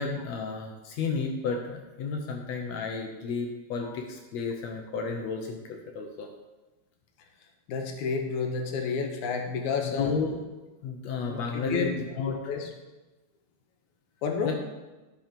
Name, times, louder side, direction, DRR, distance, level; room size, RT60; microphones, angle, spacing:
voice 1, 0.0-5.6 5.9-6.3 9.8-10.4 10.8-12.4 14.4-14.5, left 4 dB, 70° left, 2 dB, 2.0 m, -32 dB
voice 2, 7.7-10.1 11.3-11.9 12.2-12.7 14.2-14.5, left 5 dB, 90° left, 3 dB, 2.6 m, -30 dB
12.0 x 5.9 x 5.1 m, 1.1 s
omnidirectional pair, 3.3 m